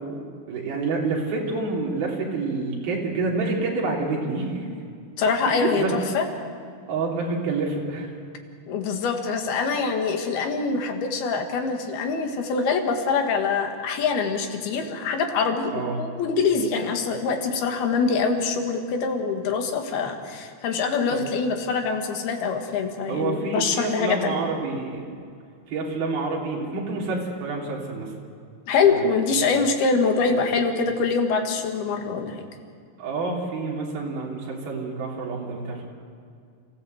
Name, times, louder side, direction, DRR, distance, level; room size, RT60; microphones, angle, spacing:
voice 1, 0.0-4.7 5.5-6.0 6.9-8.2 15.7-16.1 21.1-21.2 23.1-25.1 25.7-28.1 28.8-29.1 30.3-30.6 33.0-35.9, right 3 dB, 75° right, -3 dB, 5.0 m, -28 dB
voice 2, 5.2-5.8 6.1-6.3 8.7-24.4 28.7-32.4, left 5 dB, 85° left, 4 dB, 3.8 m, -24 dB
29.5 x 15.5 x 7.9 m, 2.3 s
omnidirectional pair, 4.3 m